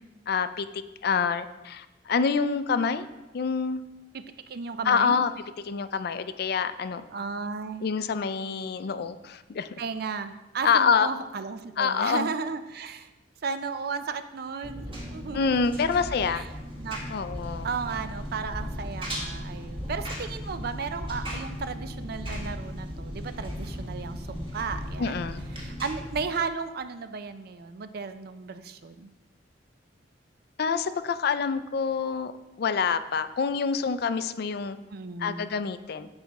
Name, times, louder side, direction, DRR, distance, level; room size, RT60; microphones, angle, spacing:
voice 1, 0.3-0.7 1.0-3.1 3.3-3.8 4.9-5.3 5.7-7.0 7.8-9.7 10.6-11.1 11.8-12.3 15.3-16.5 17.1-17.7 25.0-25.4 30.6-32.3 32.6-34.8 35.2-36.1, left 5 dB, 60° left, 12 dB, 0.4 m, -26 dB
voice 2, 4.1-5.2 7.1-7.9 9.8-13.1 13.4-15.8 16.3-16.5 16.7-25.2 25.6-29.1 34.9-35.5, right 5 dB, 55° right, 10 dB, 0.4 m, -34 dB
Engine, 14.6-26.2, equal, 30° right, 1.7 m, -36 dB
7.9 x 4.8 x 4.1 m, 1.1 s
head